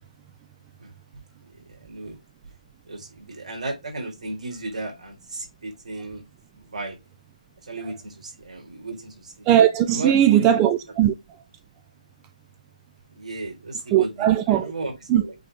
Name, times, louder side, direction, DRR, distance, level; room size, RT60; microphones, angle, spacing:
voice 1, 1.8-2.2 2.9-6.2 6.6-7.0 7.7-9.5 9.9-10.5 13.1-15.3, right 2 dB, 60° right, 3.9 m, -34 dB
voice 2, 9.5-11.1 13.9-14.7 15.1-15.2, right 11 dB, 15° right, 0.3 m, -18 dB
8.1 x 3.8 x 3.4 m
figure-of-eight pair, 160°, 4 cm